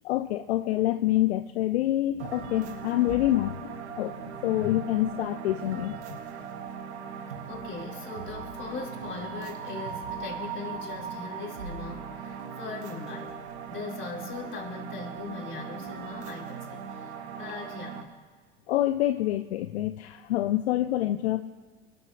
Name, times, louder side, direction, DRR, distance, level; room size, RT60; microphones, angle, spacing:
voice 1, 0.0-6.2 18.7-21.4, left 14 dB, 70° left, 10 dB, 0.7 m, -27 dB
sound 1, 2.2-18.0, right 6 dB, 75° right, 1.7 m, -39 dB
voice 2, 7.4-13.4 13.7-18.0, left 4 dB, 35° left, -3 dB, 4.9 m, -40 dB
28.5 x 13.5 x 3.3 m, 1.6 s
hypercardioid pair, 80°, 34 cm